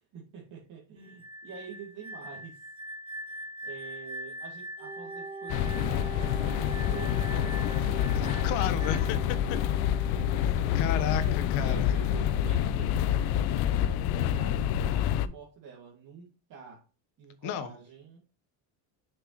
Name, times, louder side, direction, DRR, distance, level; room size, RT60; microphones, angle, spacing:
voice 1, 0.0-2.6 3.2-3.4 3.6-7.6 11.2-16.8 17.2-18.2, right 6 dB, 45° right, 2.3 m, -47 dB
sound 1, 1.0-9.3, equal, 10° right, 1.8 m, -43 dB
Wind instrument woodwind instrument, 4.8-12.5, right 3 dB, 30° right, 1.8 m, -43 dB
sound 2, 5.5-15.3, left 10 dB, 60° left, 0.7 m, -27 dB
voice 2, 8.1-9.2 9.5-9.6 10.7-11.9 17.4-17.7, left 8 dB, 75° left, 1.2 m, -32 dB
6.5 x 6.1 x 3.1 m
cardioid pair, 145°, 44 cm